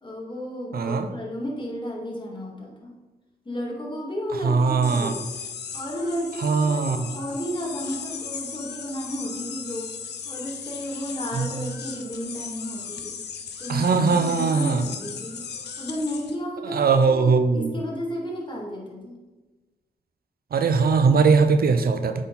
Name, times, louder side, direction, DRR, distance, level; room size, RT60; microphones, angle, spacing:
voice 1, 0.0-2.9 3.5-5.2 5.7-9.9 10.3-13.2 13.6-15.5 15.8-19.2, equal, 30° left, -2 dB, 2.0 m, -33 dB
voice 2, 0.7-1.1 4.4-5.1 6.4-7.1 11.3-11.5 13.7-14.9 16.6-17.7 20.5-22.2, right 5 dB, 65° right, 8 dB, 0.5 m, -20 dB
sound 1, 4.8-16.4, left 6 dB, 80° left, 0.7 m, -37 dB
8.2 x 3.8 x 4.1 m, 1.2 s
cardioid pair, 70°, 17 cm